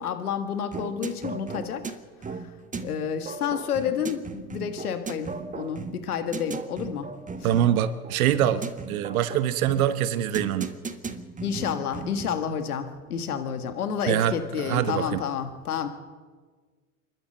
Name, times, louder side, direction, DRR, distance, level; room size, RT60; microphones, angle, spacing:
voice 1, 0.0-2.0 2.2-2.5 2.8-7.5 11.4-15.9, left 7 dB, 85° left, 9 dB, 1.7 m, -30 dB
sound 1, 0.7-12.5, right 4 dB, 15° right, 1.6 m, -37 dB
voice 2, 7.4-10.8 14.1-15.2, right 10 dB, 70° right, 13 dB, 1.2 m, -24 dB
28.5 x 12.5 x 7.7 m, 1.5 s
hypercardioid pair, 90°, 43 cm